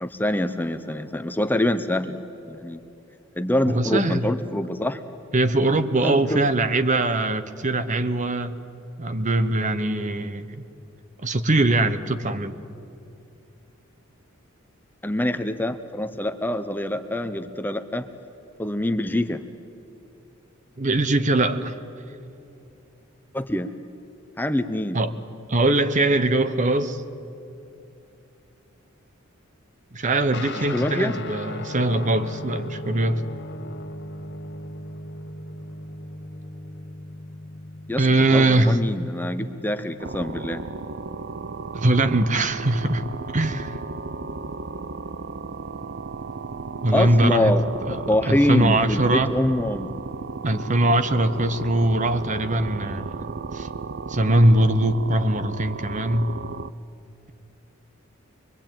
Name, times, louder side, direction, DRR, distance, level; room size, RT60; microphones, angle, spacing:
voice 1, 0.0-2.2 2.5-2.8 3.4-5.0 6.0-6.4 15.0-18.1 18.6-19.4 23.3-23.7 24.4-25.0 30.6-31.2 37.9-38.0 38.3-40.6 46.9-47.6 48.1-49.9, left 1 dB, 10° left, 9 dB, 0.7 m, -25 dB
voice 2, 3.7-4.3 5.3-8.5 9.0-10.6 11.2-12.5 20.8-21.8 24.9-25.1 25.5-27.0 29.9-33.2 38.0-38.8 41.7-43.0 43.3-43.8 46.8-47.5 47.9-48.0 48.3-49.3 50.4-53.0 53.5-53.7 54.1-56.3, right 2 dB, 35° right, 11 dB, 0.9 m, -21 dB
Guitar, 30.3-40.0, left 1 dB, 55° left, 1.3 m, -38 dB
sound 1, 40.0-56.7, right 4 dB, 55° right, 0.6 m, -34 dB
25.0 x 22.0 x 9.0 m, 2.7 s
head